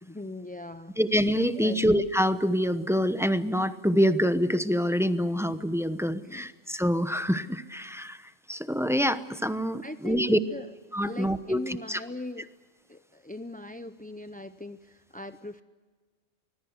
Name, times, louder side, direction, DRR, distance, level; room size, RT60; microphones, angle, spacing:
voice 1, 0.0-0.9 1.6-1.8 6.1-6.5 9.8-10.7 11.0-12.5 12.9-15.6, left 2 dB, 15° left, 10 dB, 0.3 m, -39 dB
voice 2, 1.0-10.4 10.9-12.0, equal, 5° right, 11 dB, 0.7 m, -26 dB
25.0 x 21.0 x 8.0 m, 1.4 s
omnidirectional pair, 1.3 m